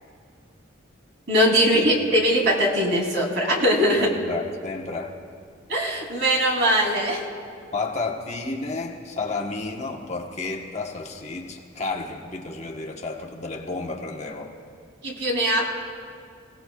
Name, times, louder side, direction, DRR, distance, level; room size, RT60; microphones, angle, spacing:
voice 1, 1.3-4.1 5.7-7.2 15.0-15.7, equal, 65° right, -1 dB, 3.0 m, -21 dB
voice 2, 4.0-5.2 7.7-14.5, left 3 dB, 35° left, 1 dB, 1.2 m, -31 dB
28.5 x 17.5 x 2.4 m, 2.4 s
head